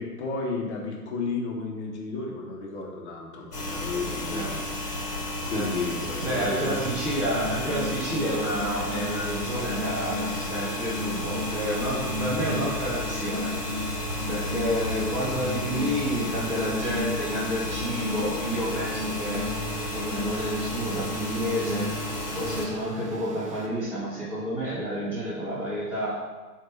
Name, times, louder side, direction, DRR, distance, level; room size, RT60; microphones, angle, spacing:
voice 1, 0.0-4.6 5.4-6.8 7.1-7.2, left 3 dB, 45° left, -1 dB, 1.3 m, -32 dB
sound 1, 3.5-22.7, left 1 dB, 80° left, 1.4 m, -33 dB
voice 2, 6.2-13.5 14.3-19.5 19.9-21.9 22.3-26.2, equal, 5° right, -12 dB, 1.0 m, -30 dB
sound 2, 6.6-23.7, left 1 dB, 25° right, 0.4 m, -35 dB
7.8 x 2.9 x 4.3 m, 1.2 s
figure-of-eight pair, 110°, 46 cm